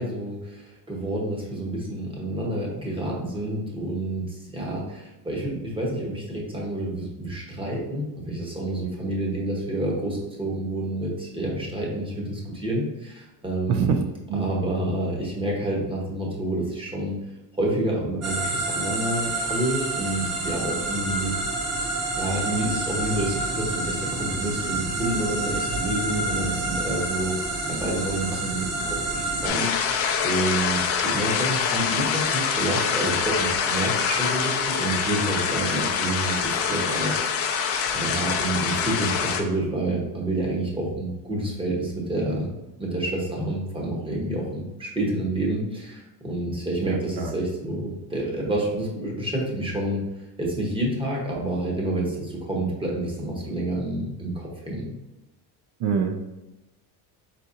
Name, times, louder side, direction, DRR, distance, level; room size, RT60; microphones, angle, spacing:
voice 1, 0.0-14.0 14.3-17.2 17.5-21.3 22.1-29.7 30.2-37.2 37.4-37.5 37.9-42.5 42.8-50.0 50.4-54.9, right 1 dB, 10° right, -3 dB, 0.9 m, -28 dB
voice 2, 13.7-14.0 14.3-14.5 46.8-47.3 55.8-56.2, right 6 dB, 65° right, 6 dB, 0.6 m, -25 dB
sound 1, 18.2-29.5, right 2 dB, 35° right, 0.9 m, -28 dB
sound 2, 29.4-39.4, left 6 dB, 35° left, 0.4 m, -25 dB
4.2 x 3.9 x 2.5 m, 1.0 s
cardioid pair, 150°, 44 cm